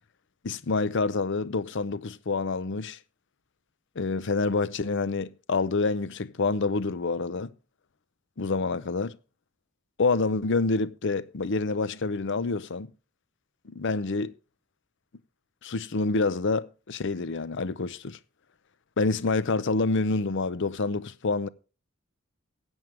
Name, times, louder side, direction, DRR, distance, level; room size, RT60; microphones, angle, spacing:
voice 1, 0.4-3.0 4.0-7.5 8.4-9.2 10.0-12.9 13.7-14.3 15.6-18.2 19.0-21.5, left 3 dB, 60° left, 0.6 m, -27 dB
15.5 x 9.0 x 3.4 m
head